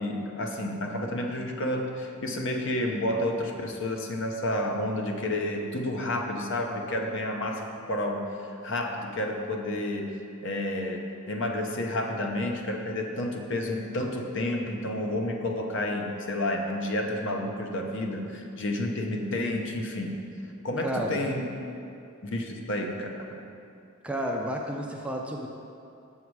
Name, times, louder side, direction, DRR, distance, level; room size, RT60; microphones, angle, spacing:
voice 1, 0.0-8.3 8.6-10.1 10.4-20.2 20.6-21.5 22.2-23.4, left 1 dB, 60° left, 2 dB, 0.7 m, -30 dB
voice 2, 24.0-25.5, equal, 5° right, 0 dB, 0.4 m, -31 dB
7.4 x 5.6 x 4.7 m, 2.6 s
head